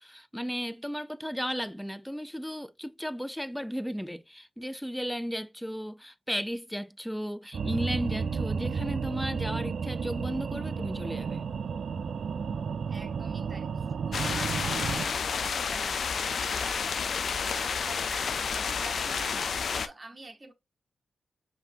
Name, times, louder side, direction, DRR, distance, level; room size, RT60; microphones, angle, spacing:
voice 1, 0.0-11.5, equal, 5° left, 0.4 m, -35 dB
sound 1, 7.5-15.0, right 5 dB, 70° right, 0.4 m, -32 dB
voice 2, 12.9-20.5, right 2 dB, 30° right, 0.7 m, -46 dB
sound 2, 14.1-19.9, left 6 dB, 70° left, 0.4 m, -30 dB
5.6 x 2.7 x 2.5 m
supercardioid pair, 45°, 0 cm